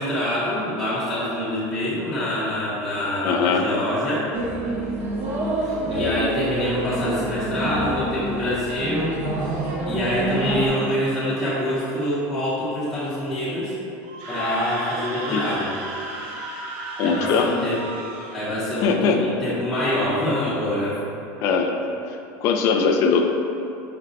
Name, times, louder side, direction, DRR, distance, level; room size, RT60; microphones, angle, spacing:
voice 1, 0.0-4.3 5.6-13.8 14.3-15.7 17.0-17.8 18.3-21.0, left 1 dB, 5° left, -13 dB, 0.7 m, -26 dB
voice 2, 3.2-3.6 15.3-15.4 17.0-17.5 18.8-19.2 21.4-21.7 22.1-23.2, left 6 dB, 40° left, 4 dB, 0.3 m, -20 dB
sound 1, 4.3-10.7, right 1 dB, 30° right, 0.5 m, -27 dB
Screaming, 14.0-18.4, right 1 dB, 65° right, 0.7 m, -33 dB
5.0 x 2.1 x 3.9 m, 2.8 s
cardioid pair, 165°, 7 cm